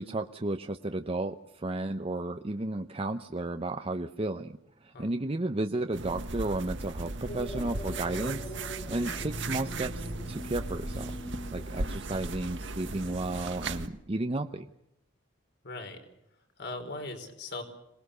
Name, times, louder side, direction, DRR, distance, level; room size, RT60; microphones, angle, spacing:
voice 1, 0.0-11.1 11.5-14.7, right 2 dB, 30° right, 6 dB, 0.8 m, -33 dB
sound 1, 5.9-13.9, right 2 dB, 65° right, 1.6 m, -37 dB
sound 2, 7.3-13.8, equal, 30° left, 2.0 m, -44 dB
voice 2, 15.6-16.0 16.6-17.6, left 2 dB, 60° left, 6 dB, 4.8 m, -39 dB
26.0 x 19.5 x 6.8 m, 0.85 s
head